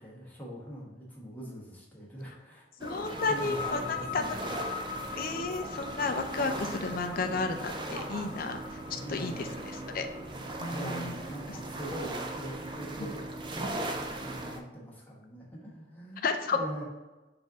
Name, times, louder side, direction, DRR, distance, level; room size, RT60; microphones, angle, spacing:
voice 1, 0.0-2.6 3.3-4.5 9.0-9.5 10.7-16.8, right 1 dB, 10° left, -5 dB, 1.0 m, -43 dB
voice 2, 2.8-4.2 5.2-8.6 8.9-9.5 9.9-10.1 10.6-11.1 16.2-16.6, left 4 dB, 50° left, 6 dB, 0.4 m, -32 dB
sound 1, 2.8-14.6, right 2 dB, 25° right, 0.4 m, -38 dB
sound 2, 3.0-10.5, left 6 dB, 35° left, 0.8 m, -42 dB
4.1 x 2.5 x 4.7 m, 1.1 s
head